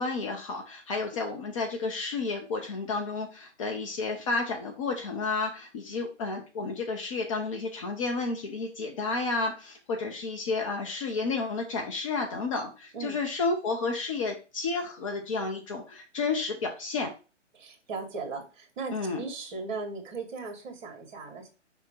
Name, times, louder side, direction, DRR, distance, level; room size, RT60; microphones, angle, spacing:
voice 1, 0.0-17.1 18.9-19.2, left 3 dB, 25° left, 3 dB, 0.8 m, -31 dB
voice 2, 17.6-21.5, right 4 dB, 40° right, 3 dB, 2.1 m, -37 dB
5.7 x 3.6 x 4.5 m, 0.32 s
hypercardioid pair, 145°, 37 cm